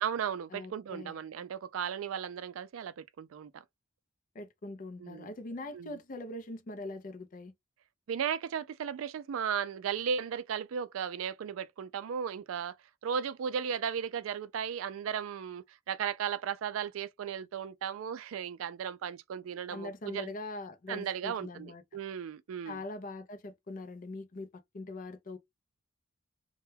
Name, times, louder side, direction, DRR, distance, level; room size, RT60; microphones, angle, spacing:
voice 1, 0.0-3.6 5.0-5.3 5.7-6.0 8.1-12.8 13.0-20.3 20.9-22.8, right 7 dB, 85° right, 0.3 m, -36 dB
voice 2, 0.5-1.2 4.3-7.5 19.7-21.8 22.7-25.4, left 2 dB, 40° left, 0.5 m, -42 dB
2.2 x 2.1 x 3.1 m
head